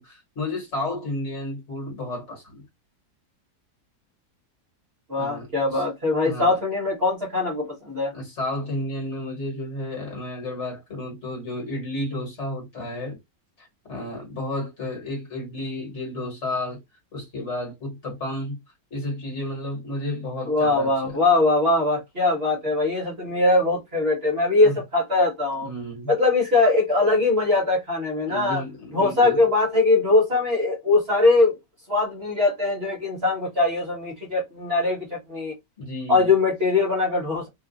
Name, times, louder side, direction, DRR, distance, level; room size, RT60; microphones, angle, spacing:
voice 1, 0.0-2.6 5.2-5.8 6.2-6.6 8.1-13.2 13.6-16.8 17.1-18.6 18.9-21.2 24.6-24.7 25.6-26.1 28.3-29.5 35.8-36.3, left 1 dB, 45° left, 1.5 m, -32 dB
voice 2, 5.1-8.1 20.5-25.7 26.1-28.6 28.9-31.6 31.9-35.5 36.1-37.5, left 3 dB, 45° right, 1.0 m, -21 dB
2.9 x 2.3 x 3.8 m
omnidirectional pair, 1.8 m